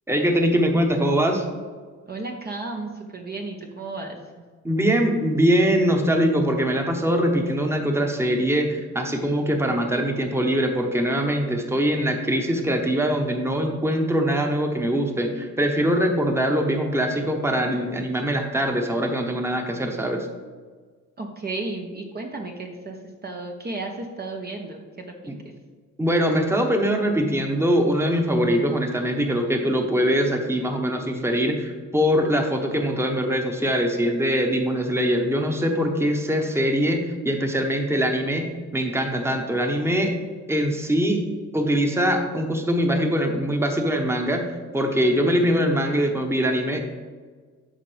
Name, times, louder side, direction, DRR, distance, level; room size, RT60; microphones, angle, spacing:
voice 1, 0.1-1.4 4.6-20.3 25.3-25.4 26.0-38.5 38.7-40.1 40.5-41.2 41.5-44.4 44.7-46.8, equal, 10° right, 3 dB, 1.1 m, -22 dB
voice 2, 2.1-4.2 21.2-25.3, right 3 dB, 30° right, 1 dB, 0.9 m, -33 dB
12.5 x 5.1 x 3.4 m, 1.5 s
cardioid pair, 90°, 30 cm